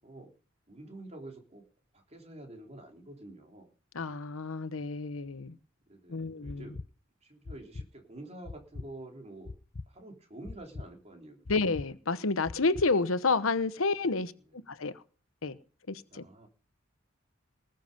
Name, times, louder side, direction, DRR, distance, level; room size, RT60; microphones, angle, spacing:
voice 1, 0.7-1.7 1.9-3.7 5.9-6.8 7.2-9.5 9.9-11.6 16.1-16.5, right 1 dB, 35° right, 3.4 m, -48 dB
voice 2, 3.9-5.6 6.1-6.7 11.5-14.3 14.7-14.9 15.4-15.6 15.9-16.2, left 3 dB, 85° left, 1.0 m, -29 dB
sound 1, 6.4-6.9 7.4-7.9 8.4-8.9 9.4-9.9 10.4-10.9 11.4-11.9 12.4-12.9, left 3 dB, 45° left, 0.6 m, -41 dB
20.0 x 7.5 x 5.3 m
head